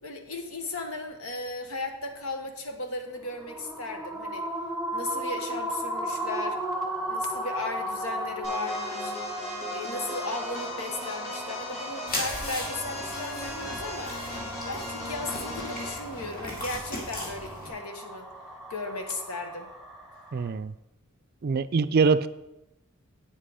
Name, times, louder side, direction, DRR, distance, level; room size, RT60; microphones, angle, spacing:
voice 1, 0.0-4.5 4.9-6.6 7.1-9.1 9.7-14.2 14.6-18.3 18.7-19.7, left 2 dB, 85° left, 5 dB, 1.3 m, -36 dB
sound 1, 3.2-20.5, right 1 dB, 5° left, 1.4 m, -36 dB
sound 2, 8.4-16.0, left 1 dB, 70° left, 3.9 m, -38 dB
sound 3, 12.1-17.7, left 1 dB, 45° left, 2.4 m, -37 dB
voice 2, 20.3-20.7 21.4-22.3, right 5 dB, 45° right, 14 dB, 0.4 m, -23 dB
8.8 x 7.6 x 5.0 m, 0.92 s
head